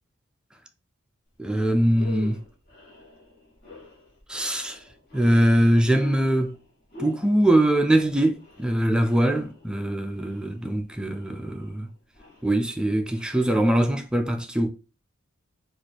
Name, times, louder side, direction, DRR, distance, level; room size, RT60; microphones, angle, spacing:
sound 1, 1.3-1.5 1.8-14.2, left 3 dB, 45° left, 1.3 m, -47 dB
voice 1, 1.4-2.4 4.3-4.8 5.1-6.5 7.0-11.9 12.4-14.7, right 1 dB, 5° right, 0.3 m, -22 dB
3.1 x 2.5 x 4.1 m
head